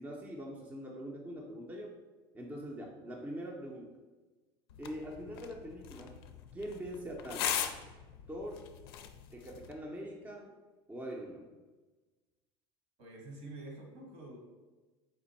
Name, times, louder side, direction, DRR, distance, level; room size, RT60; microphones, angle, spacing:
voice 1, 0.0-1.9 2.3-4.0 4.8-6.2 6.5-7.5 8.3-8.6 9.3-10.5 10.9-11.5, equal, 15° right, 0 dB, 0.6 m, -43 dB
sound 1, 4.7-9.7, left 9 dB, 80° left, 0.4 m, -40 dB
voice 2, 13.0-14.4, right 2 dB, 60° right, 1 dB, 1.3 m, -47 dB
4.3 x 2.4 x 4.0 m, 1.2 s
hypercardioid pair, 95°, 13 cm